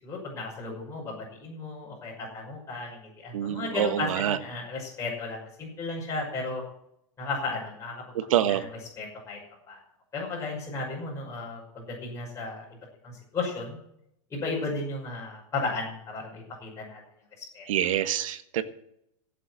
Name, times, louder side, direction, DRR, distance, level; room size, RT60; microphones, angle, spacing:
voice 1, 0.0-6.6 7.2-8.0 9.0-9.4 9.7-9.8 10.1-12.6 13.0-13.8 14.3-17.0 17.4-17.6, left 3 dB, 15° left, -5 dB, 6.0 m, -34 dB
voice 2, 3.3-4.4 8.1-8.6 17.7-18.6, right 10 dB, 75° right, 11 dB, 1.4 m, -26 dB
16.5 x 7.5 x 7.8 m, 0.76 s
supercardioid pair, 130°, 17 cm